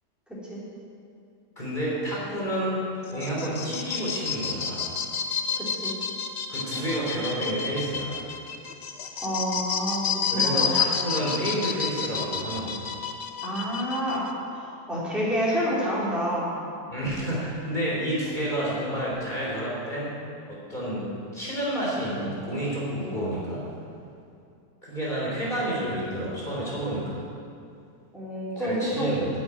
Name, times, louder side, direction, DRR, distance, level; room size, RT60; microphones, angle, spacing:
voice 1, 0.3-0.6 5.6-5.9 9.2-10.7 13.4-16.5 28.1-29.2, equal, ahead, -8 dB, 3.7 m, -28 dB
voice 2, 1.6-4.9 6.5-8.2 10.3-12.8 16.9-20.1 20.5-21.1 21.3-23.6 24.8-27.2 28.6-29.3, right 1 dB, 25° left, -6 dB, 3.5 m, -30 dB
sound 1, 3.0-14.3, left 6 dB, 50° left, 0.8 m, -30 dB
10.5 x 8.0 x 9.1 m, 2.5 s
omnidirectional pair, 1.9 m